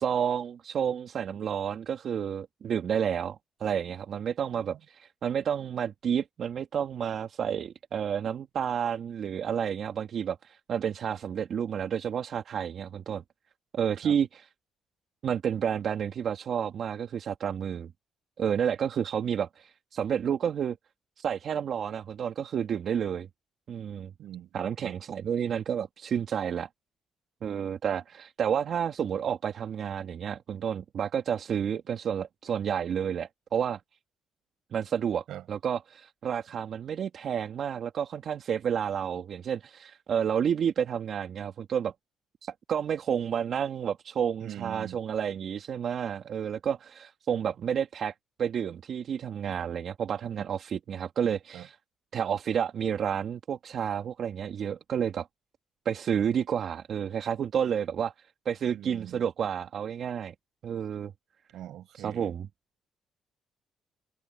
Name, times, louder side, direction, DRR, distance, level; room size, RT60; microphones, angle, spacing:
voice 1, 0.0-13.2 13.7-14.5 15.2-17.9 18.4-20.8 21.2-23.3 23.7-24.1 24.5-26.7 27.4-33.8 34.7-41.9 42.4-48.1 48.4-51.8 52.1-55.3 55.8-58.1 58.4-60.3 60.6-61.1 61.9-62.5, right 8 dB, 60° right, 2.6 m, -30 dB
voice 2, 24.2-24.5 24.8-25.0 35.3-35.4 44.4-45.0 51.5-51.7 58.7-59.3 61.5-62.3, right 12 dB, 80° right, 6.8 m, -42 dB
cardioid pair, 90°, 0 cm